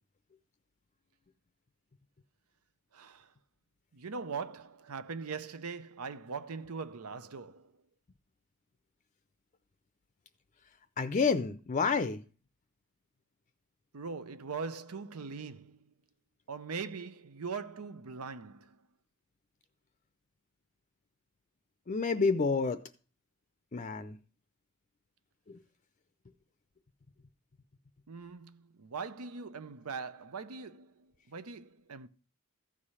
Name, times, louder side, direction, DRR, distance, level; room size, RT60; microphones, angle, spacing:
voice 1, 2.9-3.3 3.9-7.7 13.9-15.9 16.5-18.8 28.1-32.1, right 5 dB, 90° right, 0.7 m, -41 dB
voice 2, 11.0-12.2 21.9-22.8 23.7-24.2 25.5-25.6, left 4 dB, 35° left, 0.5 m, -29 dB
14.0 x 4.9 x 5.6 m
head